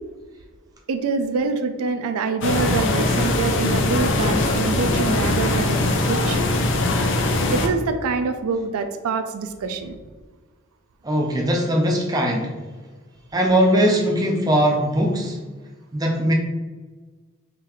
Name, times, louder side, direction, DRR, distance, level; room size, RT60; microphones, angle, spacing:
voice 1, 0.9-5.8 6.1-6.4 7.0-7.1 7.5-10.0, right 4 dB, 85° right, 8 dB, 0.4 m, -25 dB
sound 1, 2.4-7.7, left 2 dB, 55° left, 0.4 m, -21 dB
voice 2, 11.0-12.6 13.3-15.4 15.9-16.3, equal, 15° right, 0 dB, 0.4 m, -20 dB
3.8 x 3.2 x 3.0 m, 1.3 s
head